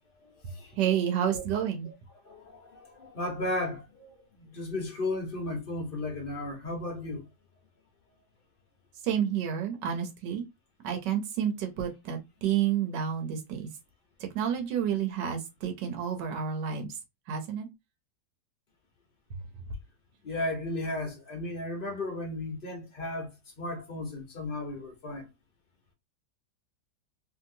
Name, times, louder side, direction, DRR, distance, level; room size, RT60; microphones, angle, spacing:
voice 1, 0.2-1.4 2.2-4.1 4.4-7.2 20.2-23.3 23.6-25.3, left 2 dB, 40° left, 0.9 m, -35 dB
voice 2, 0.8-1.9 9.0-10.4 10.8-13.7 14.3-16.9 17.3-17.7, right 9 dB, 75° right, 1.4 m, -30 dB
3.1 x 2.8 x 2.5 m
omnidirectional pair, 1.9 m